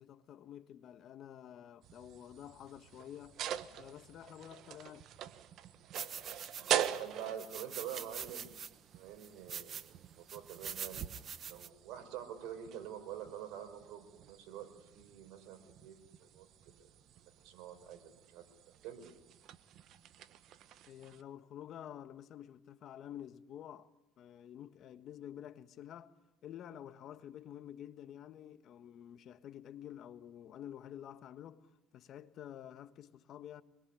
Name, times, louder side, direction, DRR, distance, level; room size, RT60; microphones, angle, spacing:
voice 1, 0.0-3.4 3.8-5.1 20.9-23.9 24.2-26.1 26.4-33.6, left 10 dB, 60° left, 1.4 m, -50 dB
sound 1, 1.8-21.2, right 10 dB, 60° right, 1.5 m, -44 dB
sound 2, 5.9-7.0 7.4-8.7 9.2-9.9 10.3-11.7, right 8 dB, 45° right, 1.3 m, -44 dB
voice 2, 6.6-8.5 8.9-11.1 11.5-16.8 17.2-19.1, right 9 dB, 75° right, 4.7 m, -47 dB
26.0 x 22.0 x 9.9 m
cardioid pair, 100°, 0 cm